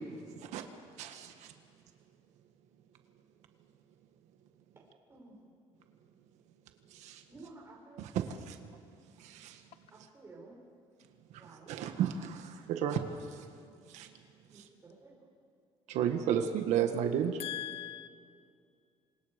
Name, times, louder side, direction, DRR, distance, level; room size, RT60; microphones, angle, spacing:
voice 1, 1.0-1.5 6.9-7.2 8.0-8.6 9.2-9.6 11.7-13.0 13.9-14.1 14.5-14.6 15.9-17.4, right 9 dB, 90° right, 6 dB, 1.7 m, -33 dB
voice 2, 5.1-5.5 7.3-8.1 9.9-10.6 11.4-11.9 14.5-15.2, right 3 dB, 20° right, -4 dB, 6.8 m, -53 dB
voice 3, 17.4-18.1, left 13 dB, 60° left, 13 dB, 0.9 m, -39 dB
28.5 x 25.5 x 5.3 m, 2.3 s
cardioid pair, 160°, 11 cm